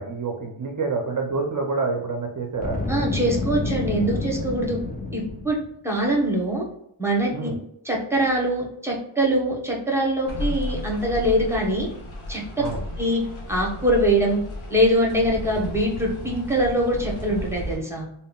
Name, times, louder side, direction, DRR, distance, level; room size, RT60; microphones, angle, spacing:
voice 1, 0.0-2.8 7.3-7.6 12.6-12.8, right 4 dB, 40° right, 1 dB, 0.5 m, -27 dB
Boom, 2.5-5.7, left 3 dB, 20° left, 0.4 m, -29 dB
voice 2, 2.9-4.8 5.1-5.6 5.8-6.6 7.0-7.5 7.8-11.9 12.3-12.4 13.0-13.2 13.5-14.4 14.7-18.1, right 1 dB, 5° right, -2 dB, 0.8 m, -23 dB
sound 1, 10.3-17.8, left 1 dB, 75° left, 0.8 m, -33 dB
3.6 x 2.0 x 2.3 m, 0.78 s
cardioid pair, 65°, 49 cm